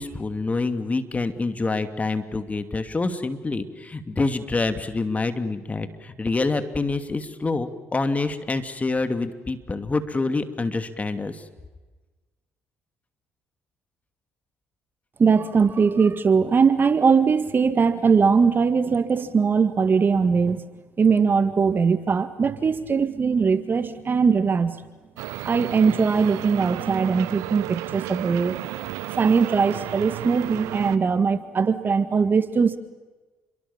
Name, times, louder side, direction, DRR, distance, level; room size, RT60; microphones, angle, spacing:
voice 1, 0.0-11.4, left 3 dB, 25° left, 9 dB, 2.7 m, -26 dB
voice 2, 15.2-20.6 21.0-24.8 25.4-28.6 29.2-32.8, right 5 dB, 40° right, 12 dB, 1.8 m, -20 dB
sound 1, 25.2-31.0, right 16 dB, 75° right, 1.0 m, -33 dB
29.5 x 23.5 x 7.3 m, 1.3 s
hypercardioid pair, 55°, 5 cm